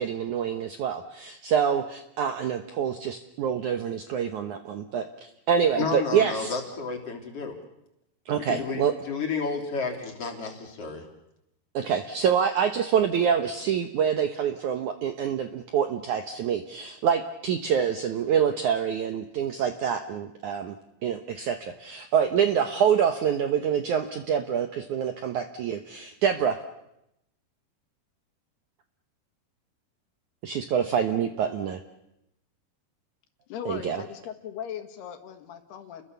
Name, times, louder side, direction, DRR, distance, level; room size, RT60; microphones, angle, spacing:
voice 1, 0.0-5.1 5.5-6.5 8.3-9.0 11.7-20.8 21.0-26.6 30.4-31.8 33.7-34.0, right 8 dB, 70° right, 7 dB, 1.9 m, -26 dB
voice 2, 5.8-7.6 8.5-11.0, left 4 dB, 35° left, 2 dB, 4.0 m, -31 dB
voice 3, 33.5-36.0, left 8 dB, 75° left, 8 dB, 3.6 m, -38 dB
30.0 x 21.5 x 6.9 m, 0.85 s
omnidirectional pair, 4.8 m